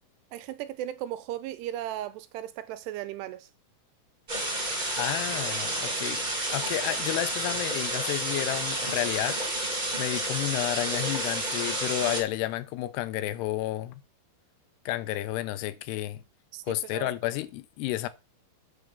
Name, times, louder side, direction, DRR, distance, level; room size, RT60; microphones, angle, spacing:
voice 1, 0.3-3.5 16.5-17.1, right 12 dB, 85° right, 2.8 m, -36 dB
sound 1, 4.3-12.2, right 1 dB, 20° right, 1.2 m, -30 dB
voice 2, 5.0-6.2 6.5-9.4 10.0-13.9 14.9-16.2 16.7-18.1, left 15 dB, 85° left, 2.7 m, -31 dB
8.5 x 4.7 x 6.9 m
omnidirectional pair, 4.8 m